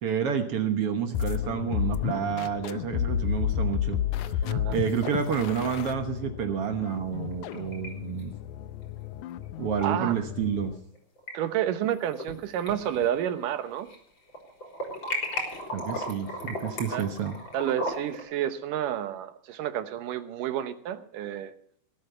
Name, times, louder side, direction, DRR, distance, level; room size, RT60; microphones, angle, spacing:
voice 1, 0.0-4.3 4.7-8.3 9.6-10.7 15.7-17.4, right 7 dB, 60° right, 7 dB, 1.8 m, -29 dB
sound 1, 1.1-10.8, left 10 dB, 75° left, 2.0 m, -32 dB
voice 2, 4.4-4.8 9.8-10.1 11.3-13.9 16.9-17.1 17.5-21.5, right 11 dB, 85° right, 11 dB, 2.7 m, -30 dB
sound 2, 7.2-7.9 8.2-8.3 9.8-9.9 10.9-11.3 11.8-12.3 12.7-14.0 14.3-18.2, left 1 dB, 35° left, 4.3 m, -35 dB
19.0 x 8.7 x 5.7 m, 0.64 s
omnidirectional pair, 3.7 m